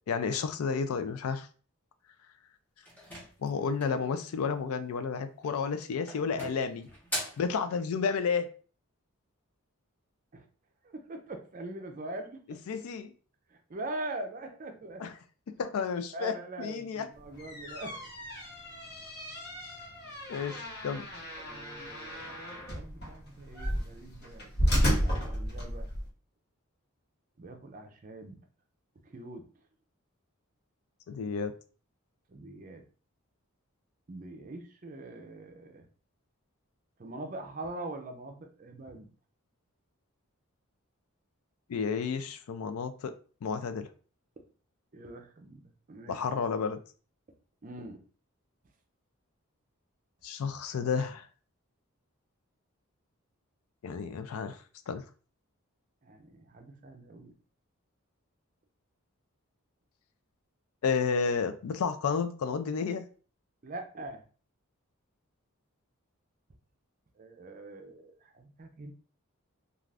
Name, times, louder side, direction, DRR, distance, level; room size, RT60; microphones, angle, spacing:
voice 1, 0.1-1.5 3.4-6.9 7.4-8.5 12.7-13.1 15.0-15.1 15.6-17.1 20.3-21.0 31.1-31.5 41.7-43.1 43.4-43.9 46.1-46.8 50.2-51.2 53.8-54.6 54.9-55.0 60.8-63.1, left 5 dB, 80° left, 0.4 m, -31 dB
sound 1, 2.8-4.1 5.3-5.7 6.1-7.5, right 1 dB, 10° left, 0.8 m, -40 dB
voice 2, 10.8-12.4 13.5-15.0 16.1-18.1 21.4-25.9 27.4-28.4 29.0-29.4 32.3-32.8 34.1-35.9 37.0-39.1 44.9-45.6 45.9-46.2 47.6-48.0 56.0-57.3 63.6-64.2 67.2-68.9, right 2 dB, 35° right, 0.4 m, -43 dB
sound 2, 17.2-26.1, equal, 50° left, 1.0 m, -33 dB
2.4 x 2.4 x 3.2 m
head